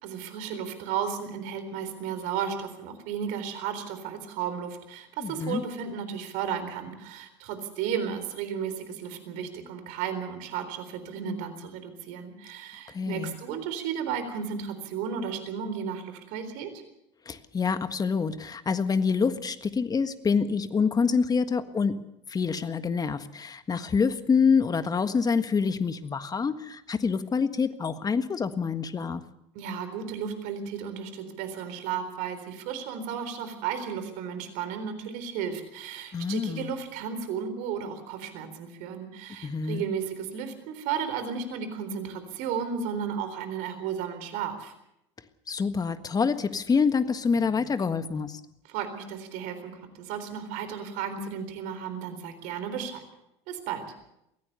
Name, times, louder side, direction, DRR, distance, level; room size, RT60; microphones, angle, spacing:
voice 1, 0.0-16.7 29.6-44.7 48.7-53.0 53.5-53.9, right 7 dB, 65° right, 10 dB, 3.9 m, -34 dB
voice 2, 5.2-5.6 12.9-13.3 17.2-22.0 22.3-29.2 36.1-36.7 39.4-39.8 45.5-48.4, left 5 dB, 25° left, 11 dB, 1.6 m, -26 dB
23.0 x 16.5 x 6.9 m, 0.84 s
hypercardioid pair, 75°, 15 cm